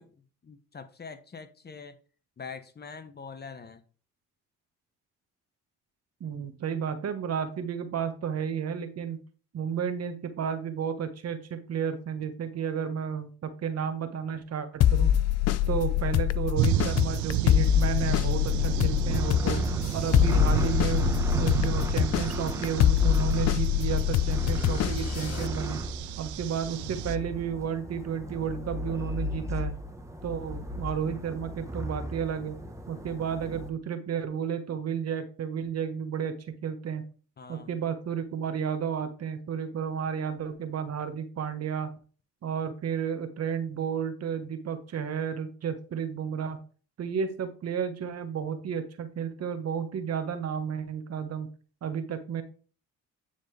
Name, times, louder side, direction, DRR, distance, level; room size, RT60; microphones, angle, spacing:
voice 1, 0.0-2.0 2.4-3.8 37.4-37.7, left 5 dB, 30° left, 1.0 m, -44 dB
voice 2, 6.2-9.2 9.5-15.1 15.7-19.6 19.9-25.8 26.2-29.7 30.2-32.6 32.9-36.3 36.6-37.0 37.5-41.9 42.4-46.6 47.0-51.5 51.8-52.4, right 7 dB, 50° right, 1.3 m, -32 dB
sound 1, 14.8-25.5, left 12 dB, 55° left, 0.5 m, -25 dB
sound 2, 16.5-27.2, right 16 dB, 65° right, 0.5 m, -32 dB
sound 3, 16.6-33.7, equal, 10° right, 1.2 m, -36 dB
9.5 x 4.1 x 3.3 m
supercardioid pair, 70°, 32 cm